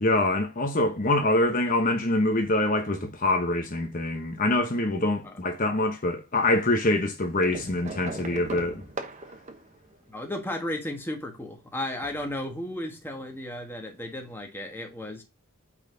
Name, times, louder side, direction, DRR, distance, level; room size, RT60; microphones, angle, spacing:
voice 1, 0.0-8.8, left 1 dB, 35° left, 0.9 m, -25 dB
sound 1, 7.4-10.6 11.9-12.7 13.9-14.0 14.2-14.3, right 3 dB, 30° right, 1.0 m, -39 dB
voice 2, 10.1-15.2, left 1 dB, 10° left, 1.4 m, -34 dB
8.9 x 4.1 x 3.8 m
head